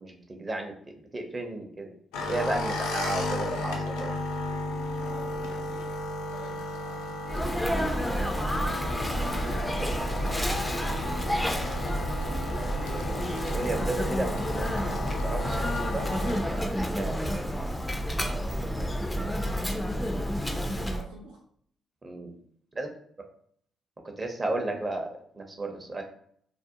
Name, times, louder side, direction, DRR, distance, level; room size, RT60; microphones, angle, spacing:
voice 1, 0.0-4.2 7.6-7.9 10.5-10.6 13.4-16.0 16.5-17.2 22.0-22.3 22.7-22.9 24.2-26.0, right 2 dB, 35° right, 3 dB, 0.6 m, -34 dB
sound 1, 2.1-16.4, left 1 dB, 80° left, 0.4 m, -34 dB
voice 2, 5.0-7.4 8.6-10.6 18.7-19.7 20.7-21.4, right 2 dB, 85° right, -4 dB, 0.4 m, -49 dB
Sneeze, 7.3-21.0, equal, 15° left, 0.4 m, -29 dB
2.4 x 2.0 x 2.7 m, 0.62 s
hypercardioid pair, 45°, 0 cm